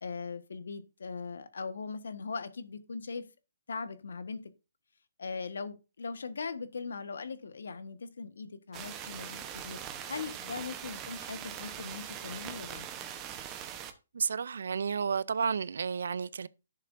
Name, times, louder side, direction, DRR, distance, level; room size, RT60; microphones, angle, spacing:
voice 1, 0.0-3.2 3.7-4.5 5.2-9.8 10.1-12.9, left 4 dB, 80° left, 1.3 m, -40 dB
sound 1, 8.7-13.9, right 9 dB, 20° right, 0.9 m, -42 dB
voice 2, 14.1-16.5, right 6 dB, 70° right, 0.5 m, -31 dB
11.0 x 6.7 x 2.6 m
hypercardioid pair, 160°, 0 cm